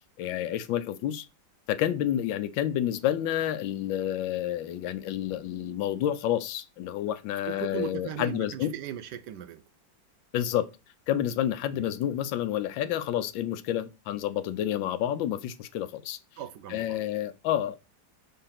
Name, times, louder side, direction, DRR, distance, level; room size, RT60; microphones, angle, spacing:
voice 1, 0.2-1.2 1.7-8.7 10.3-10.7 11.1-16.2 16.7-17.8, left 11 dB, 90° left, 1.4 m, -29 dB
voice 2, 7.5-9.6 11.7-11.8 16.4-17.0, right 10 dB, 70° right, 1.1 m, -38 dB
5.6 x 4.0 x 5.7 m
omnidirectional pair, 2.0 m